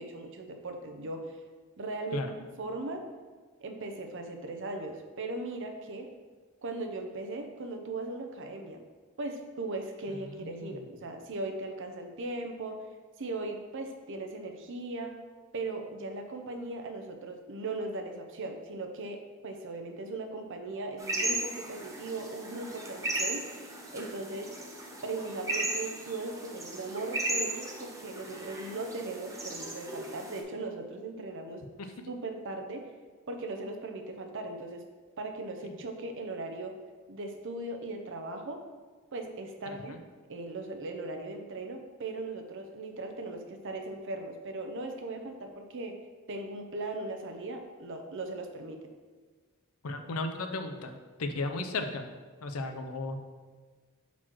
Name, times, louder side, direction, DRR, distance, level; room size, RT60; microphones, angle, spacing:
voice 1, 0.0-1.3 1.8-2.3 2.6-3.0 3.6-6.1 6.6-8.8 9.2-12.9 13.2-15.1 15.5-24.5 25.0-31.6 32.1-32.9 33.3-34.8 35.2-36.7 37.1-38.6 39.1-39.9 40.3-46.0 46.3-48.8, right 2 dB, 60° right, 5 dB, 0.7 m, -38 dB
voice 2, 10.1-10.7 31.8-31.9 35.6-35.7 39.7-40.0 49.8-52.1 52.4-53.2, left 2 dB, 85° left, 6 dB, 0.6 m, -35 dB
sound 1, 21.0-30.4, right 2 dB, 15° right, 0.8 m, -36 dB
6.0 x 4.1 x 4.6 m, 1.4 s
head